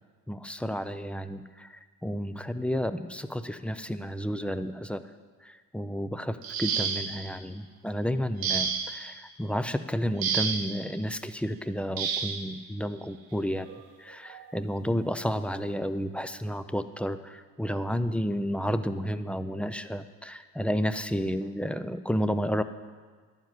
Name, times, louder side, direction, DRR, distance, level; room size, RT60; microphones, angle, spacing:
voice 1, 0.3-5.0 5.4-13.7 14.0-22.6, equal, 5° left, 11 dB, 0.3 m, -31 dB
sound 1, 6.4-7.3 8.4-9.1 10.2-10.8 12.0-12.4 13.6-13.8 14.3-14.5, right 6 dB, 85° right, 1.1 m, -30 dB
11.5 x 7.3 x 9.3 m, 1.5 s
cardioid pair, 150°, 34 cm